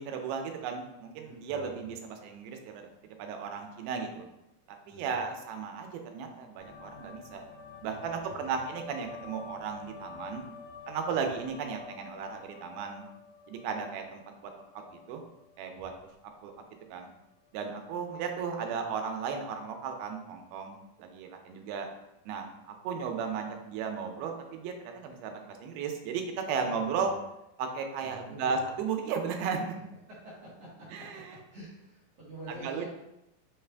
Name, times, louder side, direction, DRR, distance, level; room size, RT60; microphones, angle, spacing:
voice 1, 0.0-2.9 3.2-4.3 4.9-7.4 7.8-10.5 10.9-13.1 13.5-15.2 15.6-15.9 16.4-16.5 16.9-17.1 17.5-21.9 22.3-27.1 27.6-29.7 30.9-31.2 32.6-32.8, right 6 dB, 85° right, 4 dB, 2.5 m, -35 dB
voice 2, 1.2-1.9 4.9-5.2 7.9-8.6 11.1-11.4 26.4-27.1 28.0-28.6 30.1-31.2 31.5-32.8, right 1 dB, 65° right, -8 dB, 1.5 m, -48 dB
sound 1, 6.6-17.1 17.4-18.1, left 5 dB, 85° left, 1.4 m, -49 dB
6.1 x 2.4 x 3.3 m, 0.90 s
omnidirectional pair, 4.3 m